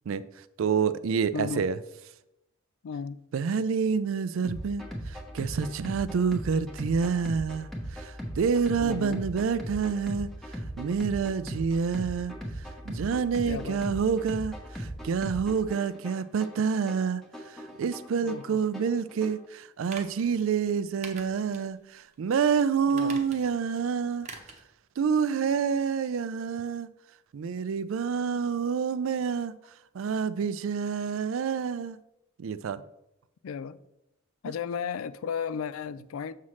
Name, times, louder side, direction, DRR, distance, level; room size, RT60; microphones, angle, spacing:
voice 1, 0.6-1.8 3.3-10.3 10.8-12.3 12.8-24.3 25.0-26.9 27.3-29.5 29.9-32.0 32.4-32.8, right 6 dB, 70° right, 0.4 m, -28 dB
voice 2, 1.3-1.7 2.8-3.2 8.8-9.2 13.5-14.0 18.2-18.6 22.9-23.2 33.4-33.8 34.4-36.3, left 6 dB, 90° left, 0.4 m, -34 dB
sound 1, 4.4-19.5, equal, ahead, 1.0 m, -38 dB
sound 2, 19.9-20.3 21.0-21.7 22.1-22.2 22.9-23.6 24.2-24.6 25.0-25.1, right 4 dB, 35° right, 0.9 m, -44 dB
7.3 x 5.7 x 3.1 m
head